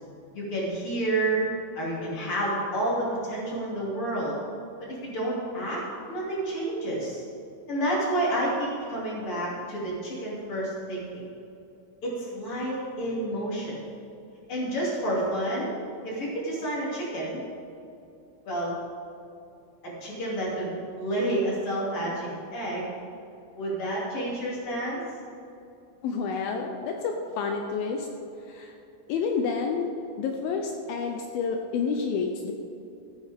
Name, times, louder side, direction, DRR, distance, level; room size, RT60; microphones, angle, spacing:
voice 1, 0.3-1.5 1.7-4.4 4.8-5.8 6.1-7.2 7.7-11.0 12.0-13.8 14.5-15.7 16.0-17.4 18.4-18.7 19.8-20.7 21.0-22.9 23.5-25.0, right 1 dB, 35° left, -6 dB, 3.3 m, -29 dB
voice 2, 26.0-28.1 28.5-28.7 29.1-29.9 30.2-32.5, left 5 dB, 80° left, 3 dB, 2.4 m, -29 dB
15.0 x 9.3 x 3.6 m, 2.7 s
omnidirectional pair, 4.5 m